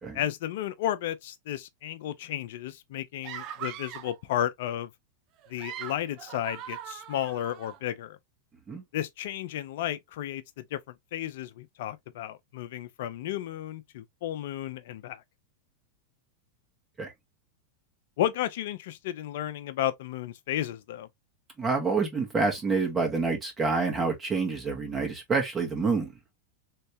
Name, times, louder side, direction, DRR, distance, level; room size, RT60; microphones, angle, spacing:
voice 1, 0.1-4.9 5.5-8.2 8.9-10.8 11.1-15.2 18.2-21.1, left 12 dB, 65° left, 0.6 m, -33 dB
sound 1, 3.2-4.2 5.4-7.8, right 10 dB, 45° right, 1.0 m, -41 dB
voice 2, 21.6-26.1, right 4 dB, 25° right, 1.5 m, -27 dB
3.2 x 3.2 x 2.7 m
hypercardioid pair, 105°, 0 cm